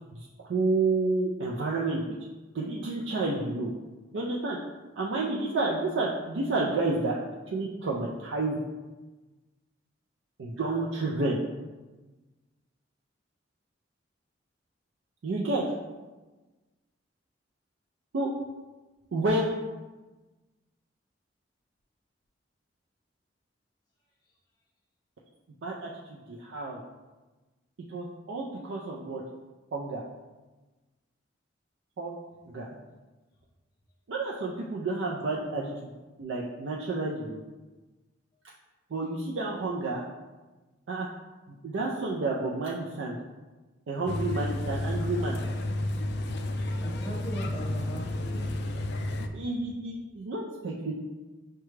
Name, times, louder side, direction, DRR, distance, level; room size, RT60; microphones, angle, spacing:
voice 1, 0.1-2.0 2.5-3.7 4.1-4.6 5.0-7.2 7.5-8.6 10.4-11.4 15.2-15.6 18.1-18.3 19.1-19.5 25.6-26.8 27.9-29.2 29.7-30.0 32.0-32.2 32.5-32.7 34.1-35.7 36.2-37.4 38.9-40.0 40.9-41.1 41.5-43.2 43.9-45.4 49.3-50.9, right 2 dB, 85° right, -3 dB, 0.4 m, -30 dB
voice 2, 32.4-32.8 35.2-35.6 46.8-48.5, right 1 dB, 20° left, -4 dB, 0.7 m, -41 dB
sound 1, 44.1-49.3, left 1 dB, 65° left, 0.3 m, -31 dB
5.8 x 2.2 x 3.1 m, 1.2 s
head